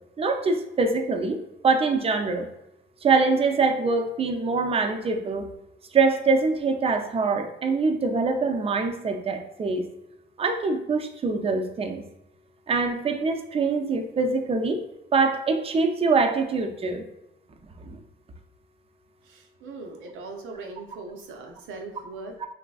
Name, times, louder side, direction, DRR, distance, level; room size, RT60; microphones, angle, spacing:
voice 1, 0.2-1.4 1.6-2.5 3.0-5.5 5.9-9.8 10.4-12.0 12.7-14.8 15.1-17.0 17.8-18.0, right 4 dB, 30° right, 6 dB, 0.4 m, -24 dB
voice 2, 19.2-22.4, right 3 dB, 85° right, 3 dB, 0.5 m, -40 dB
3.2 x 2.4 x 2.3 m, 0.88 s
cardioid pair, 90°, 20 cm